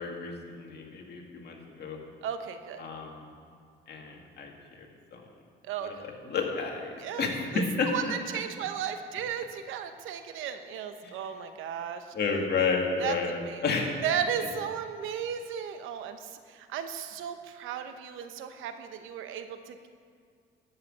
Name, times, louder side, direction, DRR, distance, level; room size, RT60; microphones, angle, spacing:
voice 1, 0.0-2.0 2.8-3.2 3.9-4.9 5.1-5.2 5.8-6.9 7.2-7.9 11.0-11.1 12.1-13.9, left 4 dB, 55° left, 1 dB, 2.1 m, -31 dB
voice 2, 2.2-2.8 5.6-6.1 7.0-7.3 7.9-12.1 13.0-13.2 13.4-13.6 14.0-19.9, right 8 dB, 90° right, 8 dB, 0.9 m, -35 dB
13.0 x 5.9 x 8.6 m, 2.1 s
cardioid pair, 90°, 20 cm